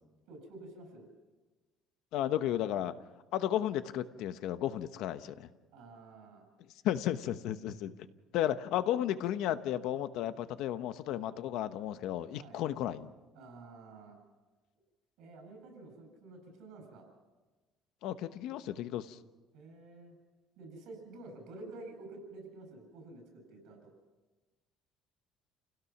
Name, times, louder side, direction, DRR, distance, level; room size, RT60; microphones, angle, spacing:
voice 1, 0.3-1.1 5.7-6.5 12.3-12.6 13.3-14.2 15.2-17.1 19.5-20.1 20.6-23.9, right 2 dB, 75° right, 4 dB, 7.7 m, -50 dB
voice 2, 2.1-2.9 3.3-5.5 6.8-7.9 8.3-13.1 18.0-19.2, left 11 dB, 70° left, 12 dB, 1.0 m, -33 dB
29.5 x 17.0 x 6.0 m, 1.2 s
cardioid pair, 155°, 0 cm